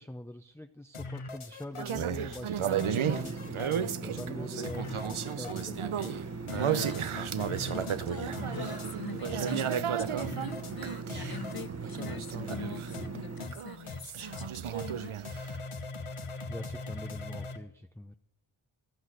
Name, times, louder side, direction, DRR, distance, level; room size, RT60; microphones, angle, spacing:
voice 1, 0.0-6.2 16.5-18.2, left 1 dB, 5° left, 0.6 m, -43 dB
Rumma Beat, 0.9-2.0 2.3-2.4 2.8-3.8 4.2-4.3 4.6-5.7 6.0-6.1 6.5-7.0 7.4-8.0 8.3-8.9 9.2-9.8 10.2-10.7 11.1-11.7 12.0-12.2 12.5-12.6 12.9-13.1 13.4-13.5 13.9-14.0 14.3-14.5 14.8-14.9 15.2-17.6, left 3 dB, 85° left, 1.2 m, -41 dB
sound 1, 1.7-13.3 13.5-15.6, right 9 dB, 80° right, 0.7 m, -34 dB
sound 2, 2.9-13.5, right 4 dB, 30° right, 1.1 m, -40 dB
voice 2, 6.5-15.2, left 6 dB, 50° left, 0.7 m, -45 dB
14.5 x 6.0 x 9.5 m
wide cardioid pair, 50°, 49 cm